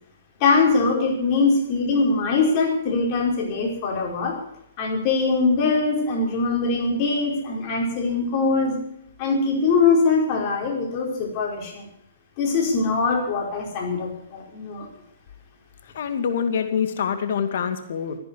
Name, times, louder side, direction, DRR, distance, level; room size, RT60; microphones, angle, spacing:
voice 1, 0.4-4.4 4.8-8.8 9.2-11.9 12.4-14.9, left 4 dB, 40° left, 0 dB, 5.1 m, -22 dB
voice 2, 15.8-18.2, left 7 dB, 60° left, 8 dB, 2.2 m, -25 dB
14.5 x 10.5 x 8.2 m, 0.77 s
hypercardioid pair, 125°, 0 cm